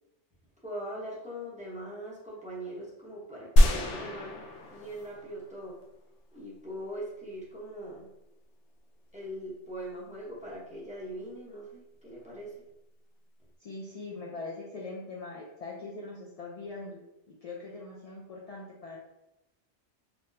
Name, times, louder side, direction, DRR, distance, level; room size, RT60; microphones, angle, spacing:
voice 1, 0.6-4.4 4.7-5.8 6.3-8.1 9.1-12.5, equal, 10° right, -6 dB, 0.7 m, -41 dB
sound 1, 3.6-5.8, equal, 85° left, 0.9 m, -25 dB
voice 2, 13.6-17.0 17.3-19.0, left 3 dB, 65° left, -2 dB, 0.3 m, -41 dB
4.1 x 2.0 x 2.6 m, 0.93 s
omnidirectional pair, 1.1 m